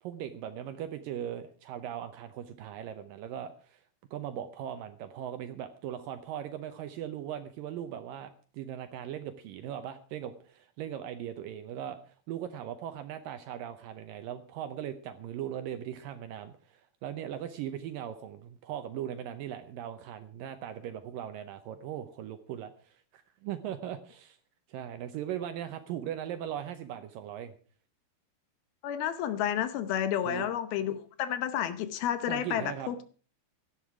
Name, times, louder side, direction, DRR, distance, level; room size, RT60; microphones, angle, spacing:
voice 1, 0.0-3.8 4.1-24.4 24.7-27.5 30.2-30.5 32.3-32.9, right 10 dB, 75° right, 9 dB, 2.1 m, -39 dB
voice 2, 28.8-33.0, left 10 dB, 75° left, 12 dB, 2.6 m, -31 dB
17.0 x 11.5 x 4.8 m, 0.41 s
omnidirectional pair, 4.7 m